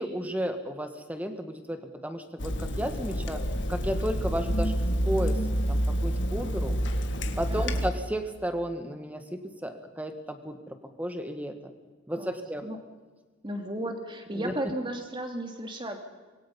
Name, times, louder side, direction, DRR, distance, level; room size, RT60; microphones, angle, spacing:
voice 1, 0.0-3.4 3.7-4.8 5.1-5.4 5.7-6.8 7.4-11.7 12.1-12.6 14.3-14.5, equal, 10° right, 7 dB, 1.9 m, -33 dB
Water tap faucet / Sink (filling or washing), 2.4-7.9, equal, 65° left, 1.8 m, -28 dB
voice 2, 7.5-7.8 12.2-12.8 13.4-16.0, right 1 dB, 25° right, 4 dB, 2.9 m, -35 dB
26.0 x 22.5 x 5.6 m, 1.3 s
head